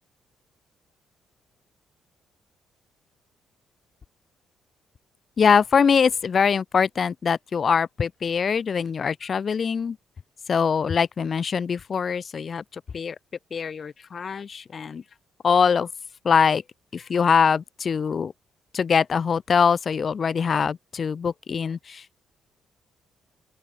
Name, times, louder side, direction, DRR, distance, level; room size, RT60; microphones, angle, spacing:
voice 1, 5.4-10.0 10.5-13.1 13.5-15.0 15.4-15.9 16.2-16.6 16.9-18.3 18.7-22.2, left 6 dB, 45° left, 1.5 m, -23 dB
open air
cardioid pair, 90°, 0 cm